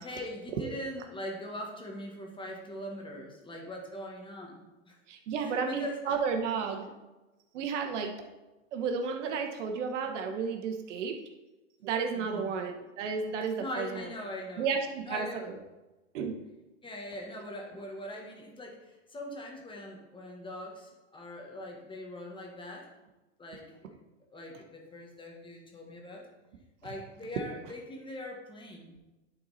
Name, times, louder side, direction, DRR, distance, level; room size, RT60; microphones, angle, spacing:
voice 1, 0.0-5.0 5.3-6.2 6.5-6.9 12.1-12.5 13.6-14.7 15.0-15.5 16.8-22.9 23.4-24.0 24.3-26.3 26.8-29.0, left 1 dB, 15° left, 0 dB, 1.5 m, -42 dB
voice 2, 5.1-6.8 7.5-8.1 8.7-11.2 11.8-14.0 14.6-15.3 16.1-16.3, right 5 dB, 65° right, 4 dB, 1.3 m, -32 dB
10.5 x 4.4 x 4.1 m, 1.1 s
hypercardioid pair, 120°, 38 cm